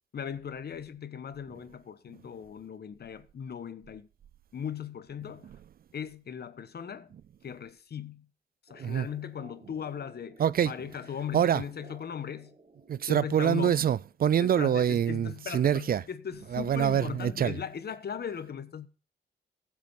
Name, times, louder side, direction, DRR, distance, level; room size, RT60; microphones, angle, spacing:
voice 1, 0.1-4.1 4.5-5.5 5.9-7.1 7.4-8.3 8.6-12.5 13.0-13.9 14.4-18.9, left 8 dB, 55° left, 1.1 m, -38 dB
sound 1, 8.7-14.2, right 3 dB, 30° right, 1.6 m, -56 dB
voice 2, 10.4-10.7 11.3-11.6 12.9-16.0 16.5-17.5, right 9 dB, 50° right, 0.4 m, -25 dB
16.0 x 6.1 x 4.1 m
supercardioid pair, 55°, 19 cm